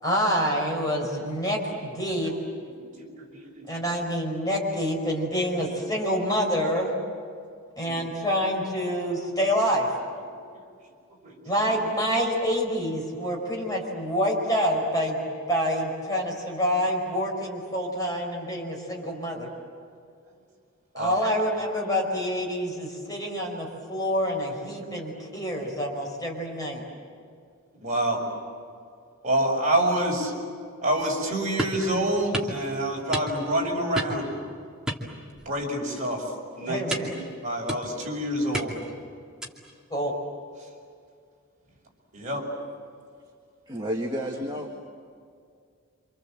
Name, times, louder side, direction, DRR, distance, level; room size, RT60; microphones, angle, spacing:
voice 1, 0.0-2.3 3.7-7.0 7.8-9.9 11.5-15.2 15.5-19.5 21.0-26.8 36.7-37.1 39.9-40.1, equal, 15° left, -1 dB, 5.3 m, -27 dB
voice 2, 3.0-3.6 7.8-8.0 11.2-11.3 20.9-21.2 27.8-28.2 29.2-30.3 30.8-34.3 35.5-36.2 36.6-37.1 37.4-38.7 42.1-42.5, right 1 dB, 35° right, -1 dB, 6.0 m, -27 dB
sound 1, 31.6-31.9 32.3-32.6 33.1-33.6 33.9-34.3 34.9-35.6 35.9-36.2 36.9-37.2 37.7-38.1 38.5-38.9 39.4-39.7, right 1 dB, 5° right, 2.5 m, -32 dB
voice 3, 43.7-44.8, equal, 20° right, 0 dB, 1.8 m, -31 dB
28.5 x 26.5 x 7.6 m, 2.2 s
head